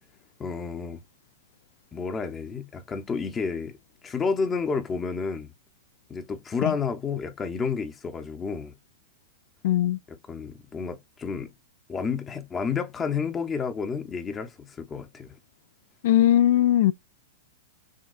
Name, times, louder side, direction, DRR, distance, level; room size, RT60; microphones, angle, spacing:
voice 1, 0.4-1.0 1.9-3.8 4.0-5.5 6.1-8.7 10.1-11.5 11.9-15.4, left 5 dB, 20° left, 0.7 m, -30 dB
voice 2, 9.6-10.0 16.0-16.9, left 12 dB, 60° left, 0.3 m, -19 dB
6.3 x 2.3 x 2.5 m
hypercardioid pair, 135°, 0 cm